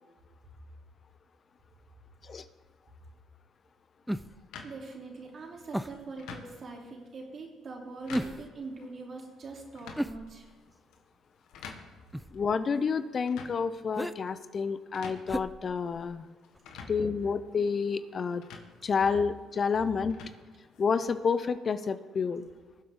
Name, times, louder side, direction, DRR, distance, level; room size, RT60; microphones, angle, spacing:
sound 1, 4.1-4.5 5.7-6.1 8.1-8.6 10.0-10.7 12.1-12.5 13.9-14.2 15.3-16.2 16.5-16.6, equal, 5° right, 0.4 m, -35 dB
sound 2, 4.5-21.2, left 5 dB, 80° left, 1.4 m, -51 dB
voice 1, 4.6-10.5, right 3 dB, 50° right, -1 dB, 3.3 m, -43 dB
voice 2, 12.3-16.2 16.9-18.4 18.8-20.2 20.8-22.5, left 5 dB, 45° left, 12 dB, 0.6 m, -29 dB
20.0 x 7.8 x 3.7 m, 1.4 s
supercardioid pair, 65°, 0 cm